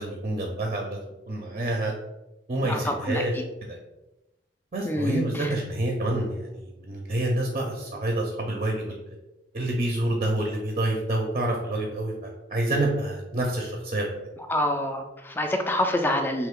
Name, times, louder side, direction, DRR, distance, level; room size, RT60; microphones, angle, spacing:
voice 1, 0.0-1.9 2.5-3.4 3.6-3.8 4.7-9.1 9.5-14.1, right 1 dB, 40° right, 0 dB, 0.5 m, -28 dB
voice 2, 2.6-3.4 4.8-5.5 14.5-16.5, left 1 dB, 10° left, 4 dB, 0.3 m, -27 dB
3.3 x 2.9 x 3.6 m, 0.99 s
head